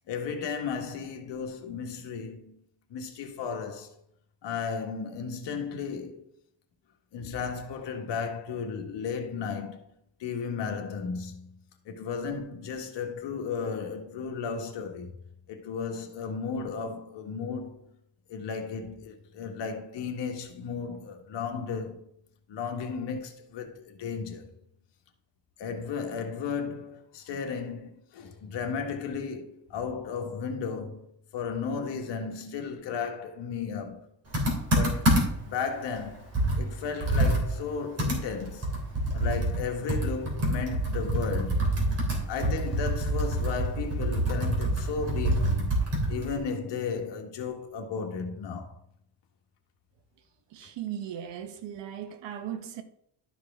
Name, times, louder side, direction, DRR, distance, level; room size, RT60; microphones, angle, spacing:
voice 1, 0.1-2.5 2.9-3.9 4.4-6.2 7.1-9.8 10.2-11.5 11.9-15.1 15.5-17.8 18.3-22.0 22.5-24.5 25.6-31.0 31.3-34.0 34.7-36.3 36.6-38.7 39.1-41.6 42.3-45.7 46.1-48.7, left 5 dB, 70° left, 1.6 m, -34 dB
Computer keyboard, 34.3-35.5 35.9-36.0 36.3-39.6 39.9-46.4, right 1 dB, 35° right, 3.2 m, -26 dB
voice 2, 50.5-52.8, right 10 dB, 70° right, 1.1 m, -37 dB
12.5 x 4.8 x 3.6 m
cardioid pair, 125°, 44 cm